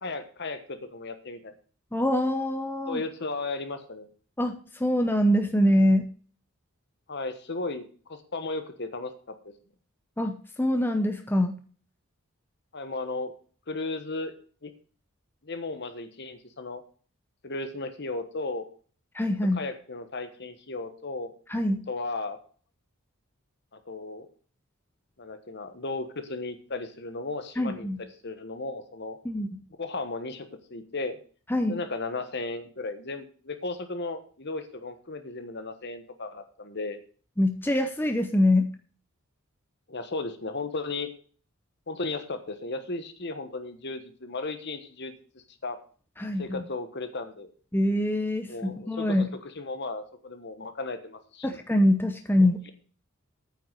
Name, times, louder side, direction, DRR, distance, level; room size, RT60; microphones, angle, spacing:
voice 1, 0.0-1.5 2.9-4.1 7.1-9.1 9.4-9.5 12.7-13.3 13.7-14.3 14.6-14.7 15.4-16.8 17.4-18.6 19.5-21.3 21.9-22.4 23.9-24.3 25.2-29.2 29.8-31.2 31.7-37.0 39.9-41.1 41.9-45.1 45.6-45.8 46.4-47.5 48.4-49.2 49.5-51.6, left 3 dB, 50° left, 9 dB, 1.3 m, -35 dB
voice 2, 1.9-3.0 4.4-6.1 10.2-11.6 19.1-19.6 21.5-21.8 27.6-28.0 29.2-29.6 31.5-31.8 37.4-38.7 46.2-46.6 47.7-49.3 51.4-52.6, left 1 dB, 10° left, 6 dB, 0.7 m, -24 dB
9.0 x 5.8 x 7.5 m, 0.42 s
head